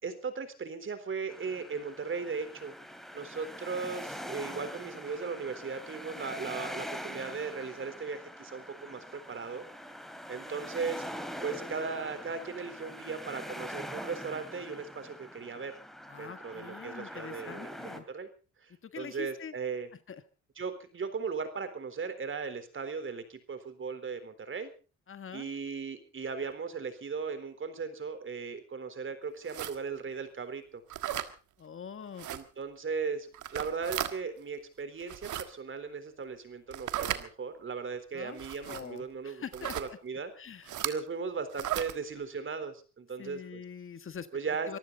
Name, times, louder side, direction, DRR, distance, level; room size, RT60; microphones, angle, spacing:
voice 1, 0.0-2.7 3.1-9.6 10.3-11.1 11.4-15.8 16.2-18.3 18.6-19.9 20.6-24.7 25.3-30.8 32.3-40.3 40.8-43.6 44.3-44.8, right 5 dB, 40° right, 11 dB, 3.8 m, -37 dB
sound 1, 1.3-18.0, equal, ahead, 2.7 m, -43 dB
voice 2, 16.1-18.0 18.8-19.5 20.1-20.2 25.1-25.5 31.6-32.3 38.1-40.0 40.4-40.8 43.2-44.3 44.7-44.8, left 7 dB, 45° left, 11 dB, 1.6 m, -44 dB
sound 2, 29.5-29.8 30.9-31.3 32.2-32.4 33.3-34.1 35.0-35.4 36.7-37.2 38.4-38.8 39.5-39.9 40.7-40.9 41.5-41.9, right 12 dB, 75° right, 1.6 m, -35 dB
24.5 x 15.0 x 3.9 m, 0.35 s
cardioid pair, 90°, 30 cm